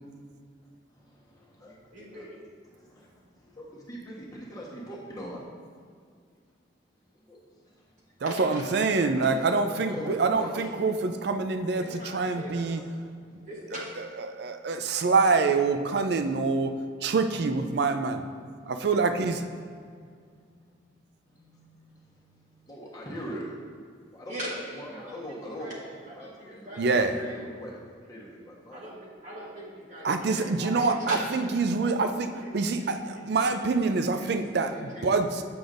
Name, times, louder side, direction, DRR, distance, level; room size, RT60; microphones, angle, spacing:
voice 1, 0.6-2.3 2.7-5.4 7.1-7.8 9.9-10.1 10.4-10.7 12.7-12.8 18.6-18.7 19.8-23.6 24.1-24.3 24.7-25.7 26.1-27.8 28.1-28.9, equal, 20° left, -4 dB, 1.1 m, -43 dB
voice 2, 1.9-2.4 8.2-8.6 8.9-9.3 9.8-10.4 11.8-12.7 13.4-13.9 24.2-25.2 25.6-27.4 28.7-31.9 32.4-32.5 32.8-33.7 34.1-35.1, equal, 40° right, -5 dB, 1.1 m, -41 dB
voice 3, 8.2-11.8 12.1-12.8 13.3-13.4 13.7-16.7 17.0-18.3 18.7-19.4 26.8-27.2 30.0-35.4, right 4 dB, 55° right, 8 dB, 0.4 m, -26 dB
7.8 x 6.9 x 2.5 m, 2.1 s
head